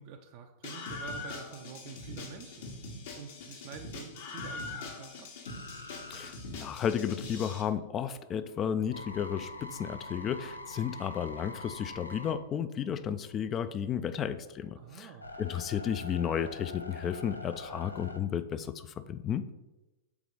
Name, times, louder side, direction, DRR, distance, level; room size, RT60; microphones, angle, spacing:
voice 1, 0.0-2.7 3.1-5.3 14.7-15.3, right 7 dB, 45° right, 3 dB, 0.5 m, -47 dB
Screaming, 0.6-7.6, left 3 dB, 55° left, 1.2 m, -42 dB
sound 1, 5.4-7.4 7.8-13.4 13.9-18.2, left 1 dB, 85° left, 0.5 m, -45 dB
voice 2, 6.1-15.1 15.4-19.4, left 8 dB, 30° left, 12 dB, 0.4 m, -33 dB
4.7 x 3.7 x 5.3 m, 1.0 s
figure-of-eight pair, 100°, 0 cm